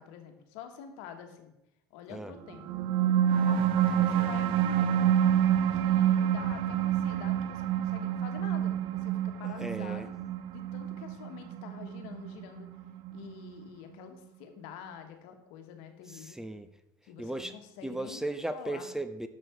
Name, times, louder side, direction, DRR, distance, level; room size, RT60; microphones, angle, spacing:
voice 1, 0.0-1.5 1.9-2.7 3.0-5.2 5.7-10.1 10.5-12.7 13.1-16.4 17.0-18.2 18.5-18.9, left 8 dB, 70° left, 6 dB, 1.4 m, -47 dB
sound 1, 2.5-13.5, right 10 dB, 60° right, 0.6 m, -27 dB
voice 2, 9.4-10.1 16.1-16.7 17.2-17.5 17.8-19.3, right 1 dB, 5° right, 10 dB, 0.5 m, -36 dB
7.8 x 6.8 x 4.5 m, 0.90 s
supercardioid pair, 95°, 10 cm